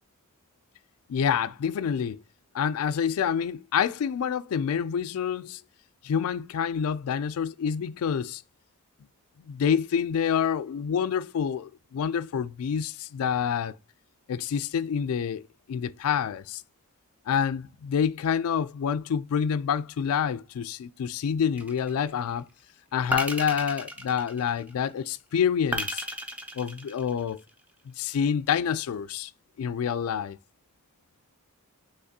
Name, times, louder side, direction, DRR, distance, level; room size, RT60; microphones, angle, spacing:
voice 1, 1.1-2.2 2.5-5.6 6.0-8.4 9.5-13.8 14.3-15.4 15.7-16.6 17.3-22.4 22.9-26.0 26.6-27.4 27.9-29.3 29.6-30.4, left 7 dB, 70° left, 0.3 m, -27 dB
sound 1, 21.6-22.2 23.1-24.8 25.7-27.5, equal, 5° right, 0.5 m, -33 dB
5.7 x 3.4 x 2.7 m
head